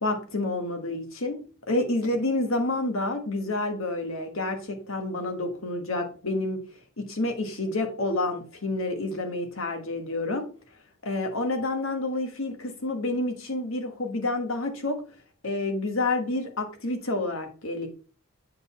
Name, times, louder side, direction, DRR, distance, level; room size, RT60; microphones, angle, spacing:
voice 1, 0.0-6.6 7.0-10.5 11.0-15.0 15.4-17.9, left 2 dB, 70° left, 5 dB, 1.4 m, -29 dB
7.9 x 3.9 x 4.2 m, 0.39 s
head